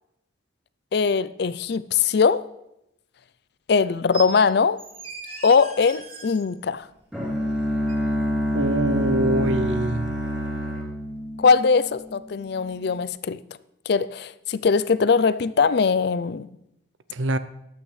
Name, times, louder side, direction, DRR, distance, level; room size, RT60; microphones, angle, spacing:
voice 1, 0.9-2.4 3.7-4.8 5.4-6.9 11.4-13.4 13.9-16.5, left 5 dB, 55° left, 16 dB, 0.4 m, -21 dB
sound 1, 4.1-4.3 4.8-6.4 7.9-8.0, right 5 dB, 30° right, 1.6 m, -38 dB
Bowed string instrument, 7.1-12.1, equal, 5° right, 2.8 m, -26 dB
voice 2, 8.5-10.1 17.1-17.4, right 1 dB, 75° right, 13 dB, 0.6 m, -24 dB
14.5 x 12.0 x 3.3 m, 0.85 s
head